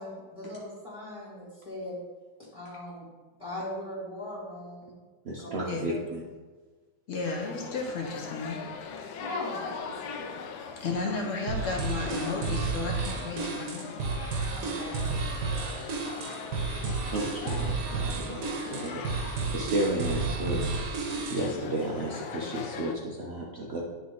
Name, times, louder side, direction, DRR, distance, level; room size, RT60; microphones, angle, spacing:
voice 1, 0.0-2.0 2.5-3.1 3.4-4.9 5.4-5.5 5.9-6.0 9.2-9.7 10.0-10.5 14.5-15.3, left 1 dB, 15° left, -9 dB, 1.9 m, -39 dB
voice 2, 5.2-6.2 16.8-20.7 21.3-23.8, right 1 dB, 85° right, -3 dB, 0.5 m, -33 dB
voice 3, 7.1-8.6 10.8-14.1 16.5-16.6, left 3 dB, 55° left, 1 dB, 0.9 m, -33 dB
sound 1, 7.2-22.9, left 6 dB, 85° left, 1.5 m, -41 dB
sound 2, 11.5-21.6, right 4 dB, 65° right, 1.2 m, -32 dB
9.6 x 3.4 x 3.9 m, 1.3 s
omnidirectional pair, 2.2 m